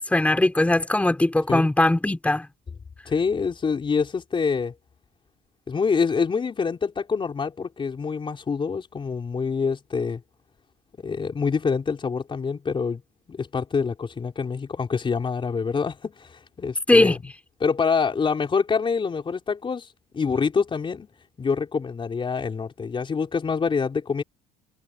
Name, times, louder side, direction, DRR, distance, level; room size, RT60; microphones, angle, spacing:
voice 1, 0.0-2.5 16.9-17.2, left 1 dB, 5° left, 4.1 m, -20 dB
voice 2, 3.1-4.7 5.7-10.2 11.0-13.0 13.3-17.2 17.6-19.9 20.1-21.1 21.4-24.2, left 5 dB, 25° left, 4.4 m, -26 dB
cardioid pair, 125°, 19 cm